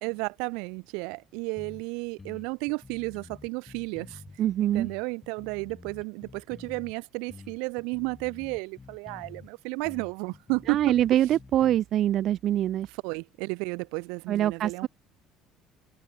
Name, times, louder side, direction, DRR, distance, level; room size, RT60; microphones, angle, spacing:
voice 1, 0.0-4.2 4.6-10.9 13.0-14.9, right 32 dB, 85° right, 2.2 m, -33 dB
sound 1, 1.6-1.8 2.2-4.4 4.7-6.9 7.3-9.5 9.8-11.8, left 4 dB, 15° left, 1.6 m, -48 dB
voice 2, 4.4-4.9 10.7-12.9 14.3-14.9, right 12 dB, 45° right, 0.9 m, -24 dB
cardioid pair, 140°, 0 cm